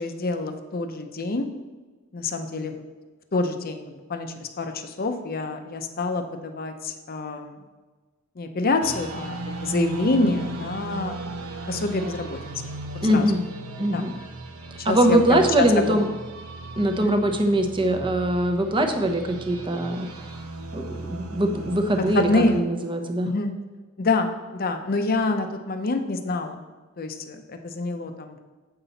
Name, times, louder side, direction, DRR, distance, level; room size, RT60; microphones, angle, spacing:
voice 1, 0.0-1.5 2.1-2.8 3.3-7.6 8.4-11.2 11.7-12.4 13.1-13.3 13.9-14.0 14.8-15.9 17.0-17.2 22.1-22.6 23.2-23.5 24.0-26.7 27.0-28.4, left 3 dB, 45° left, 6 dB, 0.7 m, -26 dB
sound 1, 8.8-22.6, right 2 dB, 90° right, 0.7 m, -36 dB
voice 2, 13.0-13.4 13.8-14.1 14.8-16.1 16.8-20.1 20.7-23.3, right 1 dB, 25° right, 5 dB, 0.8 m, -22 dB
8.0 x 5.8 x 4.0 m, 1.3 s
head